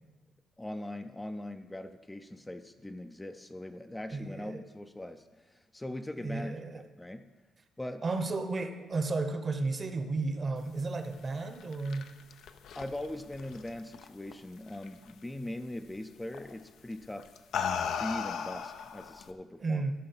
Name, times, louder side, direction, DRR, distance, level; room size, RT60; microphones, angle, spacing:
voice 1, 0.6-7.3 7.8-8.0 12.7-17.3 18.0-19.8, left 1 dB, 10° left, 7 dB, 0.5 m, -41 dB
voice 2, 4.1-4.6 6.2-6.8 8.0-12.1 19.6-19.9, right 3 dB, 35° right, 9 dB, 0.9 m, -33 dB
sound 1, 11.4-14.3 14.7-15.1 16.3-16.6 17.2-19.3, left 7 dB, 75° left, 0.6 m, -36 dB
12.5 x 5.2 x 5.6 m, 1.3 s
cardioid pair, 90°, 0 cm